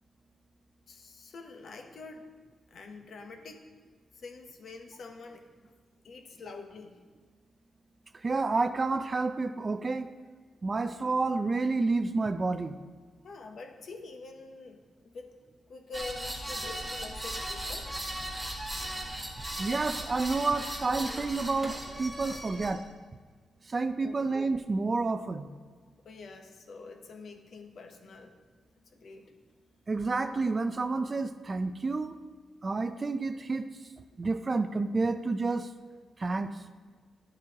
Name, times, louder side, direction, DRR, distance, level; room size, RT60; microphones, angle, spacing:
voice 1, 0.9-2.3 2.7-3.7 4.1-5.7 6.0-7.0 10.5-10.8 13.2-15.3 15.7-17.9 24.0-24.3 26.0-28.4 28.8-29.3, left 3 dB, 60° left, 5 dB, 0.9 m, -46 dB
voice 2, 8.1-10.1 10.6-12.8 19.6-22.9 23.7-25.5 29.9-32.2 32.6-33.7 34.2-35.7 36.2-36.5, right 3 dB, 30° right, 10 dB, 0.4 m, -29 dB
sound 1, 15.9-22.7, right 1 dB, 5° right, 1.3 m, -37 dB
11.5 x 7.6 x 2.9 m, 1.5 s
wide cardioid pair, 125°, 0 cm